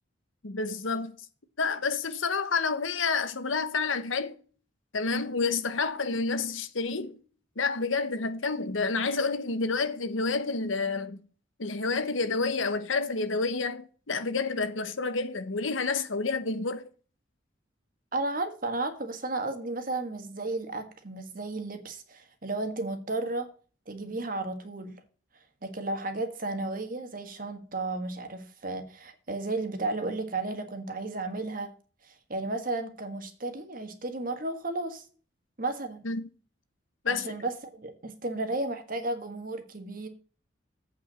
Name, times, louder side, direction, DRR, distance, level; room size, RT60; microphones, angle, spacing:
voice 1, 0.4-1.2 1.6-4.4 4.9-7.2 7.6-11.2 11.6-16.9 36.0-36.3 37.0-37.3, left 4 dB, 85° left, 1.1 m, -29 dB
voice 2, 18.1-23.5 23.9-25.0 25.6-31.7 32.0-35.0 35.6-36.0 37.1-40.1, right 2 dB, 45° right, 1.6 m, -33 dB
8.3 x 5.4 x 7.5 m
head